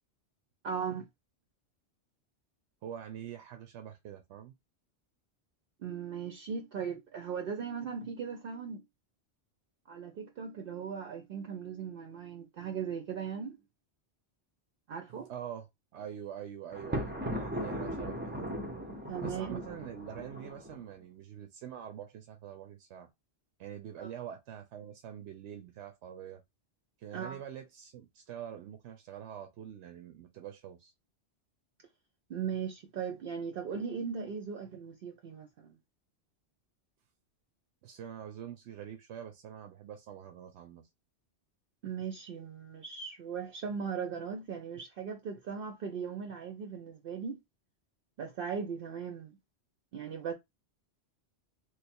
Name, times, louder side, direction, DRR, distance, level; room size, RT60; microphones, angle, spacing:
voice 1, 0.6-1.0 5.8-8.8 9.9-13.6 14.9-15.3 19.1-19.6 24.0-24.1 27.1-27.4 32.3-35.8 41.8-47.4 48.2-49.4 49.9-50.3, right 6 dB, 60° right, 0.7 m, -38 dB
voice 2, 2.8-4.5 15.3-18.6 19.2-23.1 23.6-26.4 27.0-30.9 37.8-40.9, right 9 dB, 85° right, 0.9 m, -45 dB
Thunder, 16.7-20.8, equal, 15° right, 0.4 m, -37 dB
3.3 x 2.1 x 4.2 m
omnidirectional pair, 1.1 m